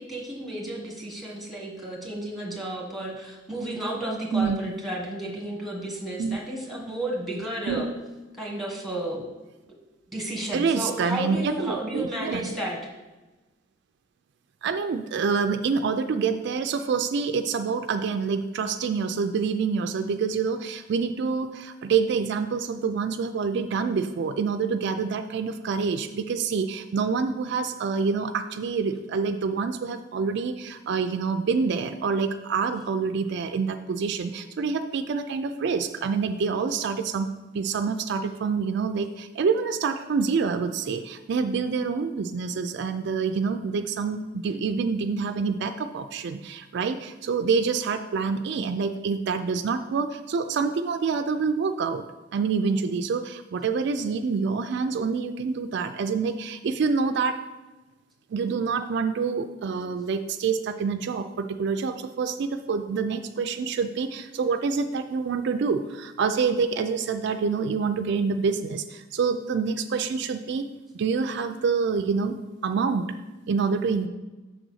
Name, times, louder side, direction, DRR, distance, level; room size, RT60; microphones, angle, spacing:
voice 1, 0.0-7.9 8.4-9.3 10.1-12.8, right 1 dB, ahead, -2 dB, 1.5 m, -32 dB
voice 2, 4.3-4.7 6.2-6.4 7.7-7.9 10.5-12.4 14.6-52.0 52.3-57.4 58.3-70.6 70.9-73.1 73.5-74.1, right 5 dB, 60° right, 8 dB, 0.3 m, -27 dB
6.2 x 4.0 x 6.3 m, 1.1 s
head